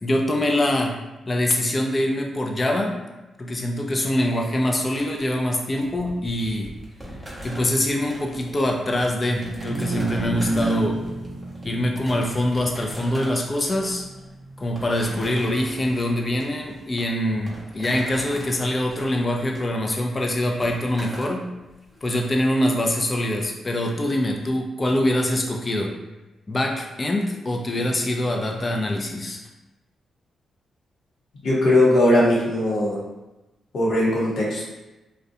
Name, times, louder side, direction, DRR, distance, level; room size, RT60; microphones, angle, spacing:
voice 1, 0.0-1.0 1.3-3.0 3.4-6.7 7.4-11.0 11.6-14.1 14.6-21.5 22.0-25.9 26.5-29.4, left 1 dB, 30° left, 1 dB, 0.4 m, -24 dB
sound 1, 4.9-22.3, equal, 5° right, 0.7 m, -41 dB
sound 2, 9.4-15.6, right 2 dB, 65° right, 0.6 m, -31 dB
voice 2, 31.4-33.0 33.7-34.6, left 1 dB, 65° left, -5 dB, 0.8 m, -19 dB
2.5 x 2.1 x 2.6 m, 1.0 s
cardioid pair, 80°, 0 cm